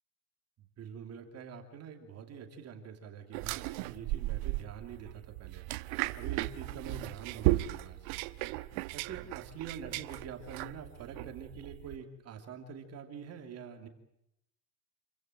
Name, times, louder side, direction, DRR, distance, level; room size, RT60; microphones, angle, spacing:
voice 1, 0.8-5.7 6.2-8.2 8.9-13.9, right 6 dB, 30° right, 6 dB, 2.8 m, -45 dB
sound 1, 3.3-12.0, right 18 dB, 50° right, 1.2 m, -36 dB
28.5 x 15.5 x 9.1 m, 0.84 s
supercardioid pair, 140°, 48 cm